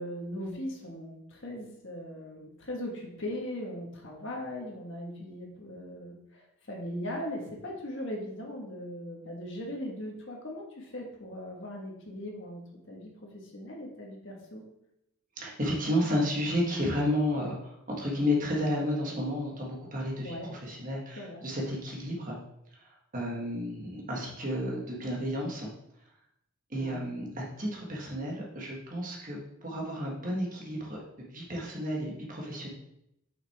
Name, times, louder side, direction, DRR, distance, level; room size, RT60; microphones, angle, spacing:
voice 1, 0.0-12.6 12.9-14.6 20.2-20.5 21.2-21.4 26.8-27.0, left 1 dB, 55° left, 0 dB, 1.6 m, -39 dB
voice 2, 15.4-22.4 23.1-25.7 26.7-32.7, left 1 dB, 40° right, -2 dB, 1.5 m, -32 dB
6.1 x 5.9 x 3.5 m, 0.81 s
head